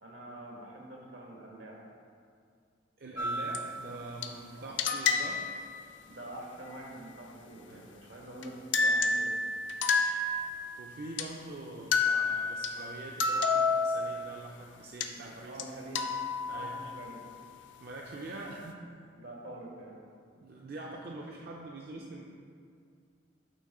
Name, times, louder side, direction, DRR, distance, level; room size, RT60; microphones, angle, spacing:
voice 1, 0.0-1.8 4.5-4.7 6.1-9.3 15.4-16.2 16.5-17.2 19.2-20.0, right 1 dB, 80° right, -1 dB, 1.3 m, -45 dB
voice 2, 3.0-5.5 7.7-7.9 10.8-15.6 16.5-16.8 17.8-18.8 20.4-22.2, right 2 dB, 55° right, -1 dB, 0.5 m, -44 dB
sound 1, 3.2-4.3 4.8-5.7 8.4-8.5 8.7-10.8 11.2-11.3 11.9-14.3 15.0-15.1 15.6-15.7 16.0-17.0, left 4 dB, 70° left, 0.5 m, -30 dB
8.5 x 3.0 x 5.4 m, 2.2 s
head